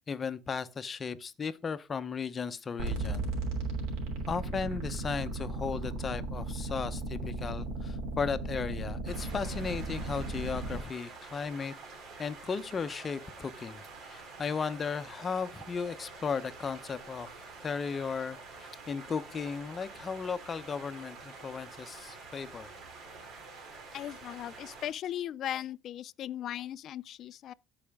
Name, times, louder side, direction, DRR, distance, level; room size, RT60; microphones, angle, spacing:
voice 1, 0.0-3.3 4.3-11.7 12.2-17.3 17.6-22.7, left 5 dB, 30° left, 0.8 m, -36 dB
sound 1, 2.8-10.8, right 3 dB, 90° right, 3.1 m, -35 dB
sound 2, 9.1-24.9, right 3 dB, 55° right, 2.9 m, -48 dB
voice 2, 23.9-27.5, left 11 dB, 50° left, 0.4 m, -38 dB
14.0 x 4.9 x 3.5 m
cardioid pair, 125°, 0 cm